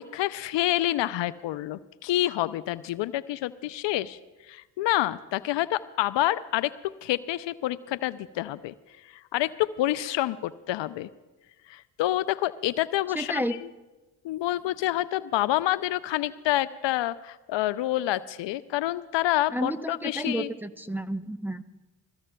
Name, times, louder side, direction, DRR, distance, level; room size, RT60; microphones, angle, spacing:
voice 1, 0.0-4.2 4.5-6.7 7.0-8.7 9.0-11.1 11.7-13.4 14.2-20.5, left 15 dB, 65° left, 16 dB, 0.5 m, -28 dB
voice 2, 13.1-13.5 19.5-21.6, equal, 5° right, 7 dB, 0.7 m, -31 dB
29.0 x 15.5 x 2.3 m, 1.1 s
hypercardioid pair, 45°, 48 cm